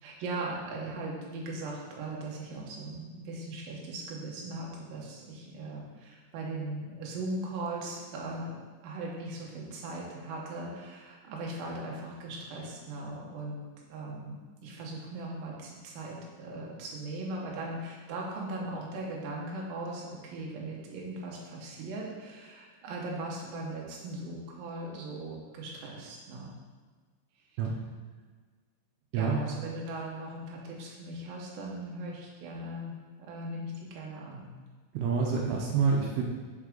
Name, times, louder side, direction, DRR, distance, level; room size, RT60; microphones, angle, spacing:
voice 1, 0.0-8.5 8.8-26.5 29.1-34.5, right 2 dB, 70° right, -2 dB, 2.2 m, -39 dB
voice 2, 34.9-36.2, right 5 dB, 90° right, -1 dB, 2.3 m, -27 dB
11.0 x 4.1 x 3.8 m, 1.5 s
omnidirectional pair, 5.6 m